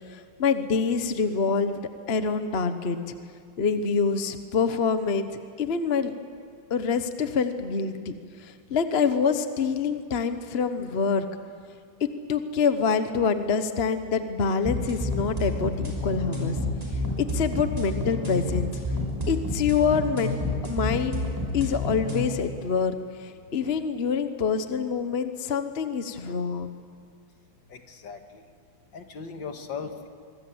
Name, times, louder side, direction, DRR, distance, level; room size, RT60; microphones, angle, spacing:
voice 1, 0.1-1.8 2.1-3.1 3.6-6.1 6.7-8.1 8.4-11.3 12.3-16.6 17.2-18.7 19.3-21.2 21.5-26.7, left 5 dB, 40° left, 9 dB, 1.1 m, -26 dB
sound 1, 14.6-22.2, left 2 dB, 10° right, 5.8 m, -29 dB
voice 2, 27.7-28.4 28.9-30.1, left 5 dB, 65° left, 6 dB, 2.2 m, -38 dB
25.5 x 24.0 x 8.0 m, 2.1 s
omnidirectional pair, 2.3 m